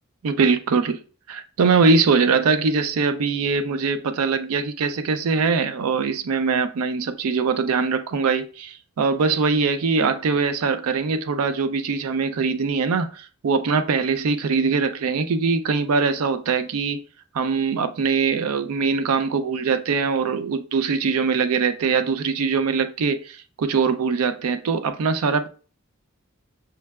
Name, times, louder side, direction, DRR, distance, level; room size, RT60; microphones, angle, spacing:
voice 1, 0.2-1.0 1.3-17.0 17.3-25.5, right 4 dB, 80° right, 0.4 m, -22 dB
5.6 x 3.2 x 2.3 m
head